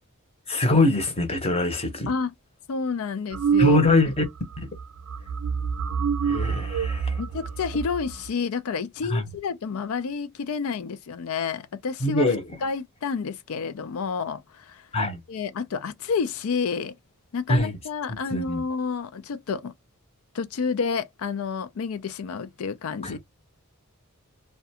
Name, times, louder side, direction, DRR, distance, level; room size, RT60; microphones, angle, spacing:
voice 1, 0.5-2.1 3.6-4.2 4.6-4.7 6.2-7.2 9.1-9.2 12.0-12.4 14.9-15.2 17.5-17.7 18.3-18.6 23.0-23.2, left 2 dB, 25° left, 0.8 m, -23 dB
voice 2, 2.7-3.9 7.2-12.3 12.6-14.9 15.3-17.0 17.3-19.7 20.3-23.2, left 5 dB, 70° left, 0.4 m, -29 dB
sound 1, 3.3-4.3 4.5-4.8 5.1-8.3, right 6 dB, 70° right, 0.4 m, -25 dB
2.4 x 2.2 x 2.7 m
head